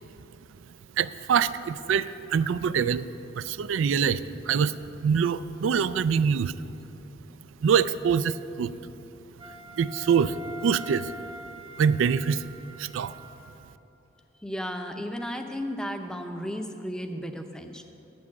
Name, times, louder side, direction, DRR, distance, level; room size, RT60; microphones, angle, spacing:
voice 1, 1.0-3.1 3.3-6.5 7.6-8.7 9.8-10.4 10.6-11.1 11.8-12.4 12.8-13.1, right 7 dB, 85° right, 15 dB, 0.3 m, -25 dB
Wind instrument woodwind instrument, 9.4-13.7, left 1 dB, 25° right, 0.8 m, -44 dB
voice 2, 14.4-17.8, equal, 5° left, 5 dB, 0.5 m, -34 dB
9.7 x 6.9 x 8.5 m, 2.9 s
head